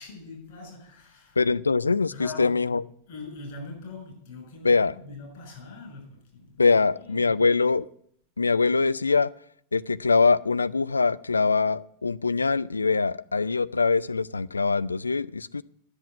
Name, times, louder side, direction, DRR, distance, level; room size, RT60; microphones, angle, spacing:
voice 1, 0.0-1.4 2.1-2.7 3.1-7.4, left 3 dB, 50° left, 6.5 m, -42 dB
voice 2, 1.4-2.8 4.6-5.0 6.6-7.9 8.4-9.3 9.7-15.6, left 4 dB, 80° left, 0.4 m, -23 dB
10.5 x 8.0 x 9.5 m
figure-of-eight pair, 90°, 0 cm